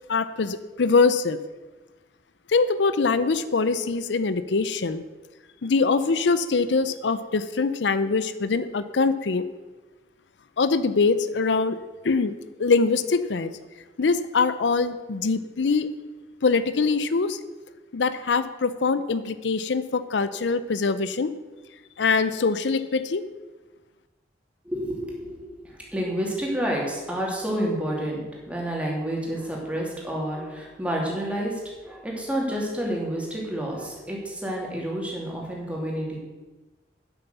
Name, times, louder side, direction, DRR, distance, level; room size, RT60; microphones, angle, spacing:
voice 1, 0.1-1.4 2.5-5.0 5.6-9.4 10.6-11.8 12.0-12.3 12.6-13.5 14.0-15.9 16.4-17.4 17.9-21.3 22.0-23.2, left 4 dB, 85° left, 13 dB, 0.6 m, -23 dB
voice 2, 24.6-36.2, right 1 dB, 5° right, -2 dB, 2.8 m, -29 dB
9.3 x 8.2 x 6.8 m, 1.2 s
head